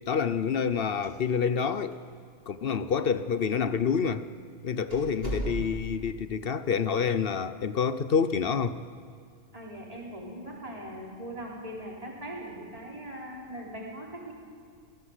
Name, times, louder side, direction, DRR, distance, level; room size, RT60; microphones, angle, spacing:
voice 1, 0.1-2.0 2.5-4.2 4.6-8.7, left 6 dB, 55° left, 13 dB, 0.9 m, -27 dB
sound 1, 1.0-1.7 1.9-2.0 2.8-2.9 3.6-3.8 4.3-4.4 4.9-6.0, right 1 dB, 50° right, 5.6 m, -36 dB
voice 2, 9.5-14.3, right 1 dB, 30° right, -3 dB, 4.3 m, -40 dB
24.0 x 17.5 x 8.1 m, 2.1 s
omnidirectional pair, 1.3 m